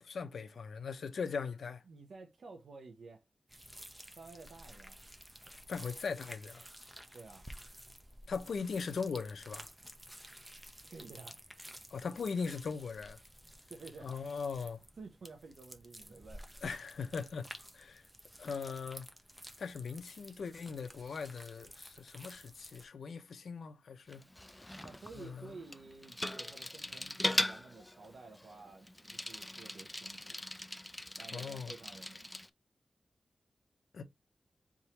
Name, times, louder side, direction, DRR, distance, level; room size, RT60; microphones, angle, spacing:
voice 1, 0.0-1.8 5.7-6.7 8.3-9.7 11.9-13.2 14.0-14.8 16.6-18.1 18.4-19.1 19.6-24.3 25.2-25.5 31.3-31.7 33.9-34.0, left 5 dB, 85° left, 0.7 m, -40 dB
voice 2, 1.9-3.2 4.1-5.0 7.1-7.5 10.8-11.4 13.7-14.2 15.0-16.5 24.8-30.4 31.2-32.3, right 3 dB, 75° right, 0.9 m, -52 dB
sound 1, 3.5-22.9, equal, 10° right, 1.0 m, -53 dB
Bicycle, 24.1-32.5, left 1 dB, 15° left, 0.5 m, -40 dB
4.3 x 3.7 x 3.0 m
cardioid pair, 70°, 0 cm